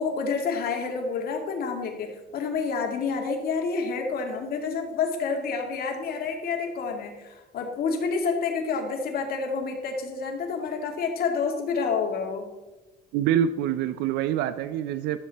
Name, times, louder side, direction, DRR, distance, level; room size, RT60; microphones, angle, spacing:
voice 1, 0.0-12.5, left 5 dB, 65° left, 2 dB, 2.1 m, -29 dB
voice 2, 13.1-15.2, right 10 dB, 85° right, 13 dB, 0.4 m, -25 dB
12.5 x 7.6 x 4.1 m, 1.1 s
cardioid pair, 110°, 17 cm